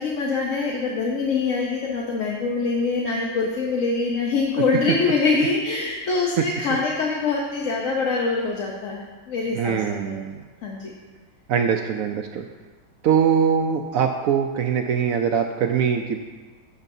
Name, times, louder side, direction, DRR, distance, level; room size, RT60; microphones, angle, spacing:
voice 1, 0.0-10.2 10.6-10.9, left 4 dB, 55° left, -2 dB, 1.0 m, -24 dB
voice 2, 9.5-10.4 11.5-12.5 13.0-16.2, right 7 dB, 80° right, 4 dB, 0.7 m, -22 dB
12.0 x 8.1 x 2.7 m, 1.3 s
omnidirectional pair, 1.9 m